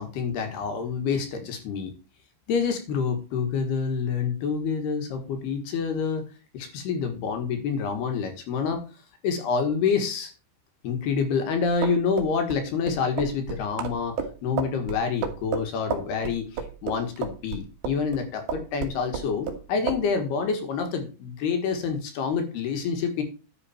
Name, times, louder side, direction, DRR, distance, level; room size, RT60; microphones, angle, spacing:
voice 1, 0.0-1.9 2.5-8.8 9.2-10.3 10.8-23.2, left 5 dB, 65° left, 6 dB, 3.4 m, -27 dB
sound 1, 11.6-18.2 18.5-19.6 19.9-20.1, right 6 dB, 65° right, 3.1 m, -31 dB
11.0 x 8.2 x 4.3 m, 0.33 s
omnidirectional pair, 5.2 m